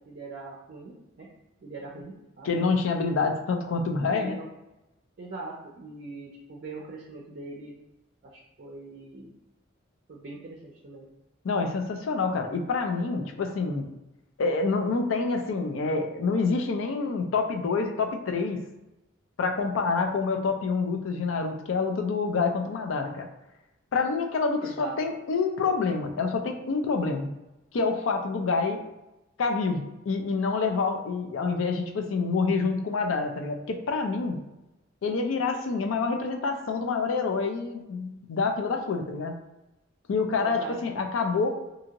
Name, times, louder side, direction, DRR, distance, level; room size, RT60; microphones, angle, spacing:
voice 1, 0.1-1.3 1.6-2.5 4.1-4.4 5.2-7.7 8.2-9.3 10.1-11.1 24.6-25.0 40.4-40.8, right 3 dB, 50° right, -2 dB, 0.4 m, -41 dB
voice 2, 2.4-4.4 11.4-13.9 14.4-18.6 19.4-23.3 23.9-27.3 27.7-28.8 29.4-34.4 35.0-39.4 40.1-41.5, left 4 dB, 80° left, 4 dB, 0.4 m, -27 dB
2.7 x 2.5 x 2.8 m, 0.95 s
head